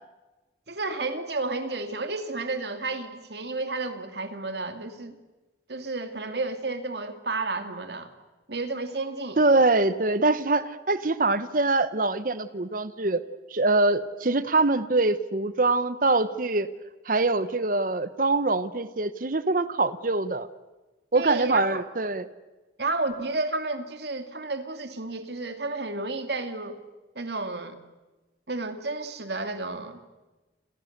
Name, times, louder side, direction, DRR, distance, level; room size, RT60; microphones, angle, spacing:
voice 1, 0.7-5.2 5.7-8.1 8.5-9.4 21.1-21.8 22.8-26.8 27.1-27.8 28.5-30.0, right 3 dB, 70° right, 7 dB, 2.5 m, -31 dB
voice 2, 9.4-13.2 13.5-16.7 17.1-20.5 21.1-22.3, right 2 dB, 50° right, 13 dB, 1.0 m, -24 dB
29.0 x 28.0 x 6.7 m, 1.1 s
head